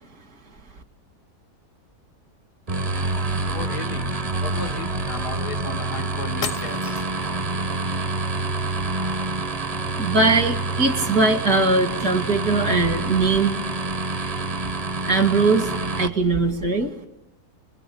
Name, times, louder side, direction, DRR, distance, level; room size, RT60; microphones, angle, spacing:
sound 1, 2.7-16.1, right 3 dB, 30° right, 0.9 m, -27 dB
voice 1, 3.5-4.1 4.4-7.1, left 5 dB, 85° left, 5 dB, 2.3 m, -35 dB
sound 2, 6.4-7.3, left 5 dB, 55° left, 1.5 m, -33 dB
voice 2, 10.0-13.6 15.0-16.9, right 3 dB, 75° right, 8 dB, 2.9 m, -20 dB
27.0 x 22.5 x 8.7 m, 0.86 s
omnidirectional pair, 1.7 m